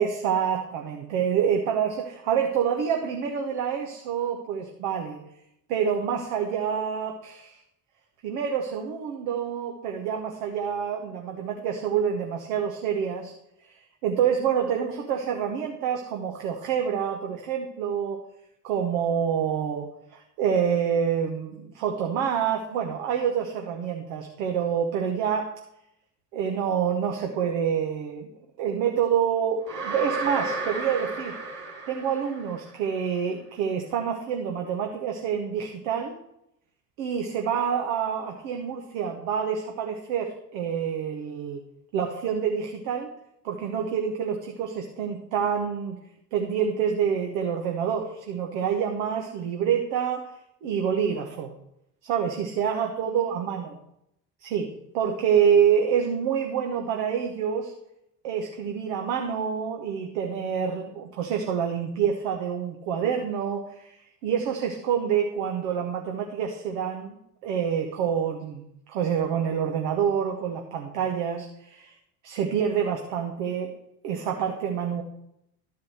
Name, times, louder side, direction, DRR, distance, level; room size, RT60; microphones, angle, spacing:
voice 1, 0.0-5.2 5.7-7.6 8.2-13.3 14.0-18.2 18.6-25.5 26.3-28.3 28.6-31.4 31.9-36.2 37.0-41.6 41.9-43.1 43.4-46.0 46.3-50.3 50.6-51.5 52.0-53.8 54.4-57.7 58.2-64.0 64.2-67.2 67.4-71.9 72.2-73.8 74.0-75.0, right 7 dB, 75° right, 2 dB, 1.1 m, -27 dB
sound 1, 29.7-32.8, right 3 dB, 90° right, 1.4 m, -33 dB
12.0 x 4.9 x 6.2 m, 0.78 s
hypercardioid pair, 45°, 47 cm